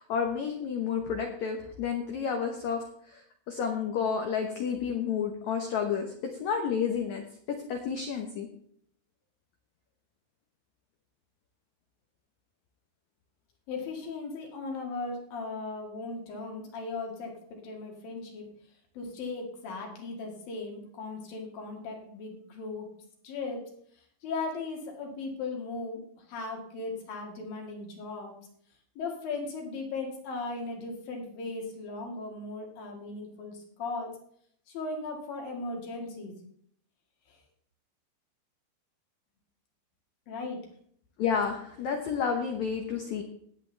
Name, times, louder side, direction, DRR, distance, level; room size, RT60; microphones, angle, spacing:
voice 1, 0.0-6.1 6.4-7.2 7.7-8.5 41.2-43.2, left 6 dB, 75° left, 4 dB, 1.6 m, -30 dB
voice 2, 13.7-18.4 19.0-22.9 23.2-23.6 24.2-26.0 26.3-28.3 29.0-34.1 34.7-36.4 37.3-37.4 40.3-40.6, left 3 dB, 60° left, 1 dB, 3.6 m, -37 dB
19.0 x 8.1 x 3.4 m, 0.65 s
omnidirectional pair, 4.8 m